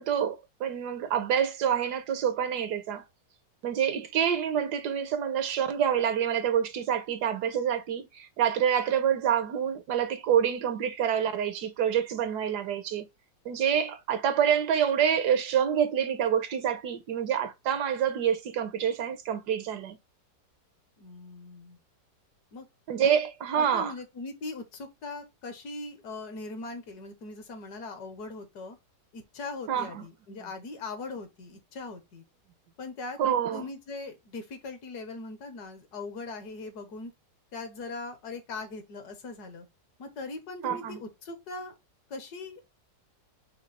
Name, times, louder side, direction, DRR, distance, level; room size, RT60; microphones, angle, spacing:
voice 1, 0.0-3.0 3.6-13.1 13.4-20.0 22.9-23.9 29.7-30.0 33.2-33.7 40.6-41.0, right 8 dB, 75° right, 1.1 m, -27 dB
voice 2, 21.0-21.8 22.5-22.7 23.5-28.8 29.1-32.2 32.8-33.2 33.5-37.1 37.5-39.7 40.0-41.7 42.1-42.6, left 3 dB, 65° left, 1.4 m, -40 dB
5.2 x 2.3 x 4.0 m
omnidirectional pair, 1.9 m